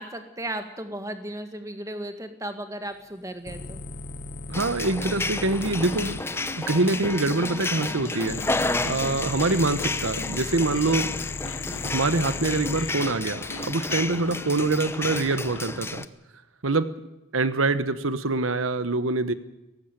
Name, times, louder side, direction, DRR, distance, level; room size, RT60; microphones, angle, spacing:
voice 1, 0.0-3.8 11.6-11.8, right 1 dB, 15° right, 7 dB, 1.8 m, -35 dB
sound 1, 3.5-6.2 8.3-12.9 14.6-14.9, left 4 dB, 45° left, 1.1 m, -36 dB
sound 2, 4.5-16.1, left 2 dB, 10° left, 0.7 m, -31 dB
voice 2, 4.5-6.2 6.6-8.4 8.8-11.1 11.8-16.0 16.6-16.9 17.3-19.3, right 3 dB, 85° right, 13 dB, 1.2 m, -25 dB
sound 3, 5.6-15.6, left 2 dB, 80° left, 2.0 m, -41 dB
18.0 x 15.5 x 9.3 m, 0.95 s
head